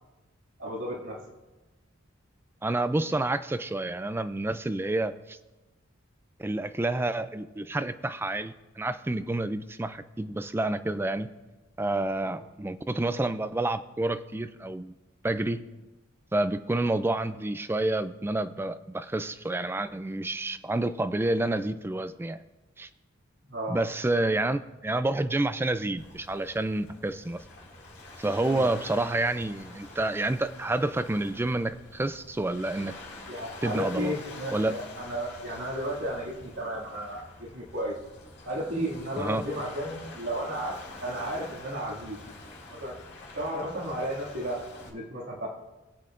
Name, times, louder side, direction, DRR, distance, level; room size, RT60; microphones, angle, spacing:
voice 1, 0.6-1.2 12.3-12.4 23.5-23.8 28.4-28.7 33.3-38.0 38.5-42.4 42.7-43.0 43.3-45.5, equal, 75° right, -4 dB, 2.2 m, -34 dB
voice 2, 2.6-5.4 6.4-11.3 11.8-14.9 15.2-15.6 16.3-22.4 22.8-22.9 23.7-27.4 28.2-32.9 33.6-34.1 34.5-34.7 39.2-39.4, right 2 dB, 10° right, 12 dB, 0.3 m, -29 dB
Waves surf, 26.0-44.9, left 2 dB, 55° left, 2.4 m, -46 dB
20.5 x 7.8 x 2.5 m, 1.1 s
head